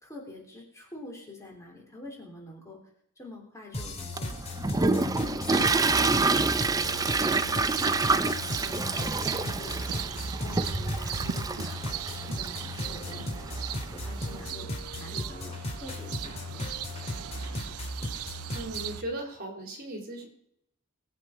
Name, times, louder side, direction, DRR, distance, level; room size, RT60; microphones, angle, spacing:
voice 1, 0.0-2.8 3.1-4.3 4.8-14.7 14.9-16.8, left 2 dB, 15° left, 0 dB, 3.4 m, -47 dB
sound 1, 3.7-19.0, left 1 dB, 30° left, 2.6 m, -37 dB
Toilet flush, 4.2-14.4, right 3 dB, 15° right, 0.5 m, -28 dB
sound 2, 5.5-19.0, right 10 dB, 85° right, 0.5 m, -40 dB
voice 2, 18.5-20.3, right 1 dB, 45° right, 1 dB, 3.9 m, -37 dB
21.0 x 8.6 x 5.0 m, 0.72 s
head